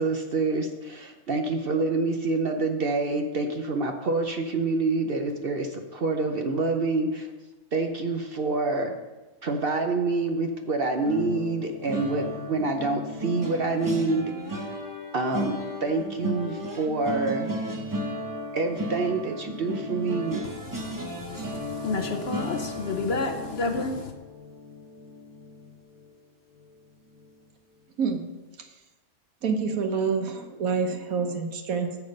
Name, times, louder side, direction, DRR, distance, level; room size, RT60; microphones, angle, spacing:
voice 1, 0.0-7.3 7.7-8.9 9.4-14.3 14.6-14.7 15.1-17.5 18.5-20.4, right 3 dB, 50° right, 5 dB, 0.8 m, -27 dB
sound 1, 11.0-26.2 26.6-26.8 27.1-27.3, equal, 15° right, 0.9 m, -35 dB
voice 2, 20.7-24.1, left 3 dB, 50° left, 4 dB, 1.1 m, -30 dB
voice 3, 29.4-32.0, right 5 dB, 75° right, 6 dB, 1.4 m, -27 dB
9.6 x 7.1 x 5.3 m, 1.2 s
omnidirectional pair, 1.5 m